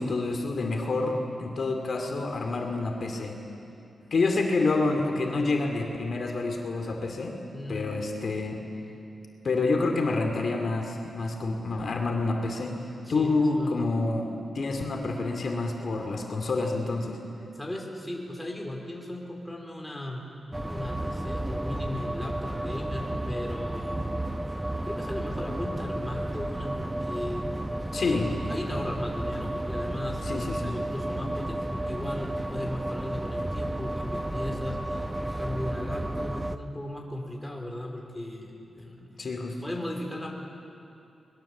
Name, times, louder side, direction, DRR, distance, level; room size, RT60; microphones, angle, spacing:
voice 1, 0.0-3.4 4.1-7.4 7.7-8.6 9.4-12.8 13.1-17.2 27.9-28.3 30.2-30.7 39.2-39.6, left 3 dB, 60° left, 3 dB, 2.5 m, -28 dB
voice 2, 7.5-7.9 13.0-13.9 17.5-20.3 20.6-24.1 24.8-28.0 28.5-39.2 39.6-40.3, left 1 dB, 10° left, 0 dB, 3.9 m, -37 dB
sound 1, 20.5-36.6, right 1 dB, 10° right, 0.8 m, -32 dB
24.0 x 21.5 x 7.4 m, 2.7 s
wide cardioid pair, 95°, 0 cm